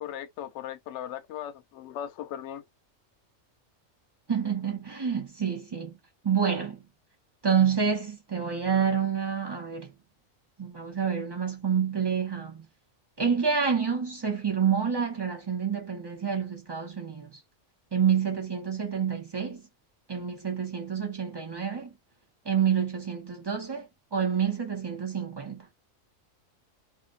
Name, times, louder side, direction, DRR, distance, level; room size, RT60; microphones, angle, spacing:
voice 1, 0.0-2.6, left 10 dB, 70° left, 0.8 m, -38 dB
voice 2, 4.3-5.9 6.2-6.8 7.4-9.9 10.6-12.7 13.2-17.4 17.9-19.6 20.1-21.9 22.4-25.7, right 7 dB, 45° right, 0.3 m, -28 dB
2.7 x 2.0 x 2.3 m
omnidirectional pair, 1.4 m